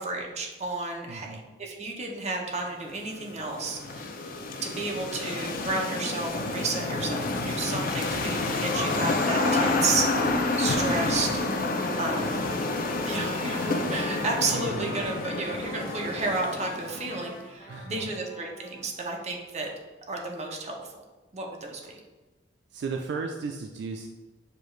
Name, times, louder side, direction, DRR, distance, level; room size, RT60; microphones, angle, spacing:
voice 1, 0.0-4.2 4.6-10.3 10.6-11.4 12.0-12.4 13.0-19.7 20.1-21.0 21.3-22.0, right 3 dB, 35° right, 0 dB, 0.7 m, -32 dB
voice 2, 1.1-1.5 12.2-12.3 14.5-14.9 17.7-18.0 22.7-24.1, right 4 dB, 70° right, 2 dB, 0.3 m, -35 dB
sound 1, 2.8-17.4, left 2 dB, 50° left, 0.4 m, -29 dB
Trumpet, 10.8-16.4 16.9-18.8, left 1 dB, 35° left, 0.9 m, -44 dB
6.6 x 2.4 x 3.1 m, 1.2 s
head